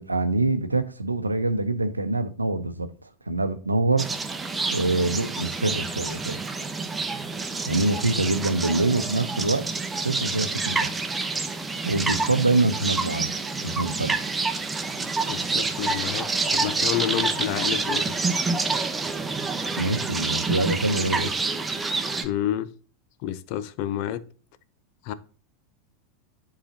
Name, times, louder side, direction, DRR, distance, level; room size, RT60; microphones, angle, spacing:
voice 1, 0.0-2.9 3.3-4.1 4.7-6.4 7.7-9.7 10.0-10.9 11.8-13.3 13.6-14.2 19.8-21.4, right 2 dB, 90° right, 0.7 m, -25 dB
sound 1, 4.0-22.2, right 3 dB, 15° right, 1.0 m, -28 dB
voice 2, 15.3-18.2 22.2-22.7 23.2-24.2 25.0-25.1, left 11 dB, 55° left, 0.6 m, -29 dB
10.0 x 4.9 x 2.8 m
figure-of-eight pair, 85°, 0 cm